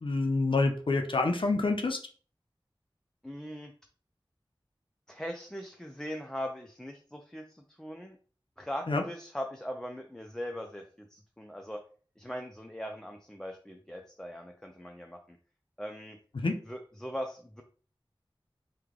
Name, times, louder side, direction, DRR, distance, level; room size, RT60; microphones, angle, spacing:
voice 1, 0.0-2.0 8.9-9.0 16.3-16.5, left 3 dB, 65° left, 4 dB, 0.5 m, -27 dB
voice 2, 3.2-3.7 5.1-8.2 8.6-11.8 12.2-15.4 15.8-16.2 16.7-17.6, equal, 5° left, 3 dB, 0.4 m, -40 dB
3.1 x 2.2 x 3.7 m, 0.41 s
wide cardioid pair, 55°, 9 cm